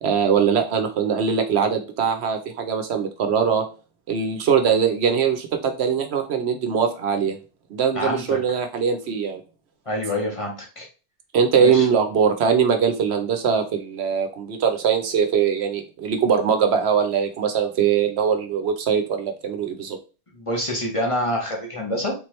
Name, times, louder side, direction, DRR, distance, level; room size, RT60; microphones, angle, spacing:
voice 1, 0.0-3.6 4.1-7.4 7.7-9.4 11.3-20.0, right 7 dB, 70° right, 5 dB, 0.9 m, -21 dB
voice 2, 7.9-8.6 9.9-10.9 11.6-11.9 20.4-22.1, left 1 dB, 30° left, 0 dB, 0.8 m, -26 dB
3.7 x 2.9 x 3.1 m, 0.33 s
omnidirectional pair, 1.2 m